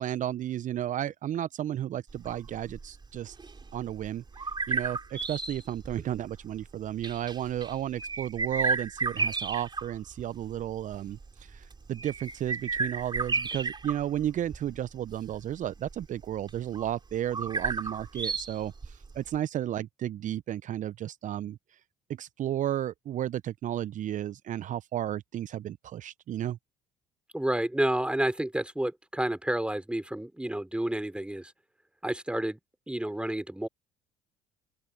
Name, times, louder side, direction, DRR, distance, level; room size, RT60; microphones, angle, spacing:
voice 1, 0.0-3.4 3.7-21.8 22.1-26.6, right 11 dB, 50° right, 0.8 m, -33 dB
sound 1, 2.1-19.4, right 4 dB, 25° right, 4.1 m, -34 dB
voice 2, 27.3-31.5 32.0-32.6 32.9-33.7, right 1 dB, 5° right, 3.6 m, -30 dB
open air
hypercardioid pair, 55°, 17 cm